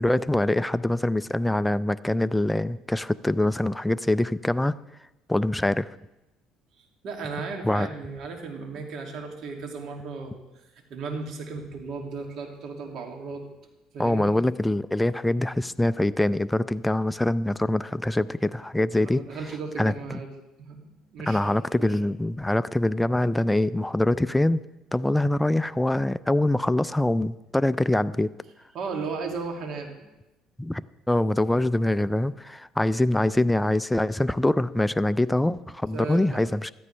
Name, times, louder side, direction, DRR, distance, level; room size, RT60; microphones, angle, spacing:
voice 1, 0.0-4.7 5.3-5.9 7.6-7.9 14.0-19.2 19.8-19.9 21.3-24.6 24.9-28.3 30.6-30.8 31.1-36.7, left 1 dB, 5° left, 14 dB, 0.3 m, -24 dB
voice 2, 7.0-10.4 10.9-13.4 13.9-14.4 19.0-20.3 20.6-21.9 28.7-30.0 35.9-36.4, right 4 dB, 60° right, 2 dB, 2.4 m, -35 dB
14.5 x 13.5 x 3.3 m, 0.97 s
supercardioid pair, 95°, 0 cm